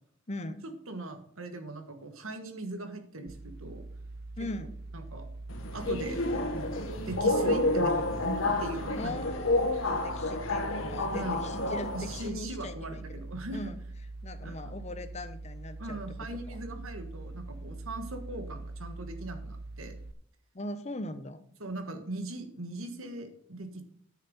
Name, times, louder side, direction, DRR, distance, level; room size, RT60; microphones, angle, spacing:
voice 1, 0.3-0.6 4.4-4.7 6.3-6.9 9.0-13.2 13.5-13.8 14.2-16.0 16.5-16.6 20.5-21.4, left 1 dB, 30° left, 11 dB, 0.8 m, -40 dB
voice 2, 0.9-3.8 4.9-5.3 5.7-6.2 6.5-6.7 7.0-9.2 11.1-11.4 11.9-13.7 14.4-14.7 15.8-20.0 21.6-23.8, right 2 dB, 75° right, 7 dB, 1.5 m, -39 dB
sound 1, 3.3-20.1, right 2 dB, 45° right, 0.6 m, -43 dB
Subway metro underground, 5.5-12.3, left 2 dB, 70° left, 1.4 m, -30 dB
10.0 x 6.6 x 5.4 m, 0.64 s
head